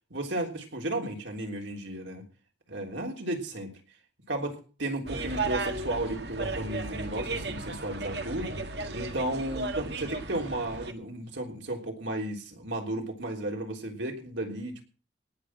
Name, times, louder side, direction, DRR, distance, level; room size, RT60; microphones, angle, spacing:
voice 1, 0.1-2.2 2.7-3.7 4.3-8.6 8.9-14.8, right 1 dB, 85° right, 2 dB, 3.4 m, -34 dB
sound 1, 5.1-10.9, right 3 dB, 65° right, 1.7 m, -35 dB
18.0 x 6.3 x 7.5 m, 0.38 s
head